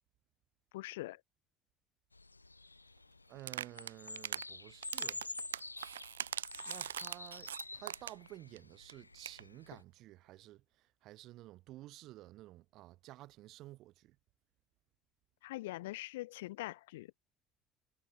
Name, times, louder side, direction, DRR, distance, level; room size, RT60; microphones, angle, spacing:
voice 1, 0.7-1.2 15.4-17.1, left 18 dB, 70° left, 1.4 m, -43 dB
sound 1, 2.1-9.8, left 3 dB, 90° left, 6.7 m, -48 dB
voice 2, 3.3-5.2 6.7-10.6 11.0-14.2, right 16 dB, 55° right, 4.1 m, -52 dB
sound 2, 3.4-4.5 4.8-8.3 8.6-8.7 8.9-9.0 9.2-9.4, right 10 dB, 80° right, 0.9 m, -41 dB
figure-of-eight pair, 55°, 0 cm